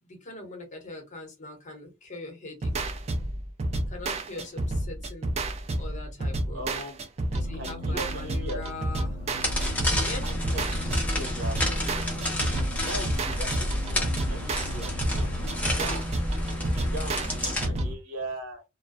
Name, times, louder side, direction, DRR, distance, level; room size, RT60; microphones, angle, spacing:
voice 1, 0.0-2.9 3.9-5.3 5.8-6.6 7.3-9.2 9.9-10.3 15.6-15.7 16.7-16.8 17.4-17.9, left 2 dB, 35° left, 0.8 m, -41 dB
sound 1, 2.6-17.9, right 1 dB, 30° right, 0.3 m, -31 dB
voice 2, 6.5-7.0 7.5-8.6 10.2-12.1 12.8-18.6, right 1 dB, 85° right, 1.0 m, -40 dB
sound 2, 8.9-15.5, left 3 dB, 70° left, 0.4 m, -43 dB
sound 3, 9.4-17.7, left 1 dB, 5° left, 0.6 m, -30 dB
2.3 x 2.1 x 2.5 m
head